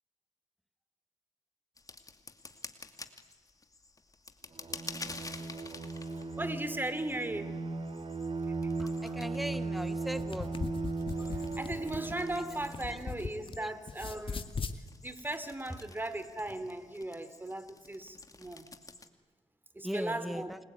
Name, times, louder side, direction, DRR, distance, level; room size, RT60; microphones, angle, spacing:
sound 1, 1.8-19.1, left 3 dB, 30° left, 2.5 m, -50 dB
Bowed string instrument, 4.5-13.0, right 3 dB, 50° right, 3.3 m, -37 dB
voice 1, 6.4-7.5 11.2-14.5 15.0-18.7 19.7-20.5, right 1 dB, 15° right, 12 dB, 3.2 m, -37 dB
voice 2, 8.8-10.5 13.6-13.7 19.8-20.6, equal, ahead, 12 dB, 1.6 m, -38 dB
sound 2, 10.0-13.6 13.9-14.8, left 4 dB, 50° left, 2.1 m, -39 dB
29.0 x 21.5 x 9.6 m, 1.4 s
cardioid pair, 60°, 12 cm